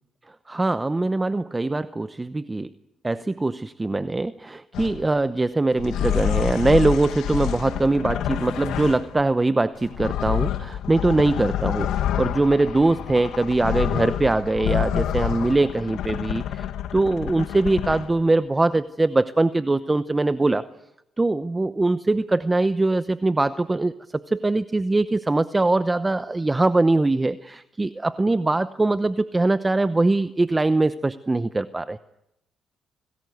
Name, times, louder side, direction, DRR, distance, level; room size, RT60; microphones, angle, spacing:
voice 1, 0.5-2.7 3.0-16.7 16.9-20.7 21.2-32.0, right 2 dB, 20° right, 13 dB, 0.8 m, -22 dB
sound 1, 4.7-5.1 5.7-9.2 9.8-18.2, left 10 dB, 80° left, 1.4 m, -28 dB
27.5 x 19.0 x 8.0 m, 0.85 s
cardioid pair, 90°, 0 cm